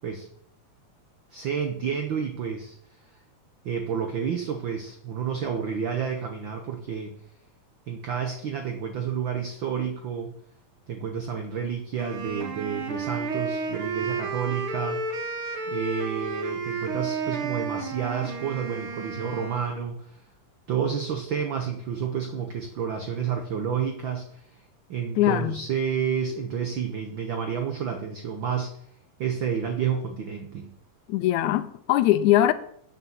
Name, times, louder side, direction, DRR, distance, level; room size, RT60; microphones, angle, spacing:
voice 1, 1.3-2.8 3.6-7.2 7.9-10.3 10.9-15.0 15.7-20.2 20.7-24.4 24.9-28.7 29.2-30.7, right 7 dB, 75° right, 1.1 m, -30 dB
Wind instrument woodwind instrument, 12.0-19.9, right 4 dB, 55° right, 1.8 m, -32 dB
voice 2, 25.2-25.6 31.1-32.5, left 13 dB, 85° left, 2.0 m, -21 dB
8.4 x 6.7 x 7.2 m
omnidirectional pair, 3.4 m